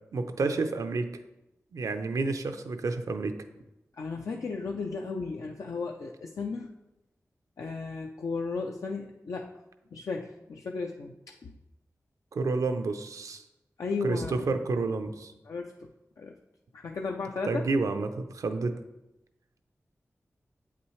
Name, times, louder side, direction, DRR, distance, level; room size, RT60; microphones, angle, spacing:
voice 1, 0.1-1.1 1.7-3.4 12.3-13.4 14.0-15.3 17.5-18.8, right 3 dB, 90° right, 7 dB, 0.5 m, -30 dB
voice 2, 4.0-6.7 7.6-9.5 9.9-11.1 11.4-11.5 13.8-14.6 15.5-15.9 16.2-16.4 16.7-17.6, left 4 dB, 85° left, 2 dB, 0.4 m, -35 dB
8.0 x 5.8 x 3.2 m, 0.94 s
cardioid pair, 55°, 5 cm